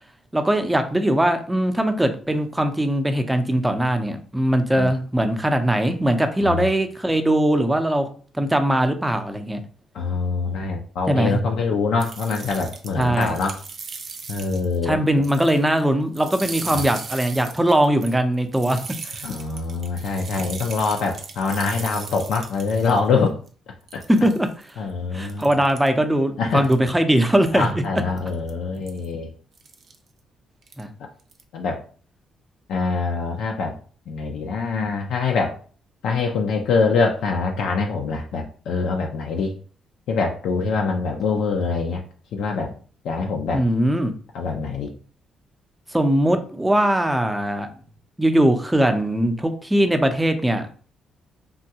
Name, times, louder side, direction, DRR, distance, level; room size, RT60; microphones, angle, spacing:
voice 1, 0.3-8.1 8.4-9.6 11.1-11.4 13.0-13.3 14.8-18.8 19.0-19.2 24.1-24.5 25.1-27.8 30.8-30.9 43.5-44.1 45.9-47.7 48.2-50.9, right 1 dB, 10° right, 6 dB, 0.5 m, -20 dB
voice 2, 9.9-13.6 14.3-15.0 16.7-16.9 19.2-23.4 23.9-24.0 24.8-25.5 26.4-26.7 27.5-29.3 31.5-31.8 32.7-33.7 34.1-35.6 36.0-39.5 40.1-42.0 42.3-42.7 43.0-43.6 44.3-44.9, left 4 dB, 80° left, 1 dB, 0.4 m, -24 dB
sound 1, 12.0-14.8 15.1-15.8 16.1-23.0 23.5-23.6 23.9-24.7 25.2-25.9 26.6-27.0 27.4-27.6 28.2-28.5 28.9-29.0 29.5-29.9 30.6-30.8 31.2-31.4, right 5 dB, 55° right, 0.5 m, -37 dB
3.5 x 2.2 x 2.8 m, 0.41 s
cardioid pair, 90°, 0 cm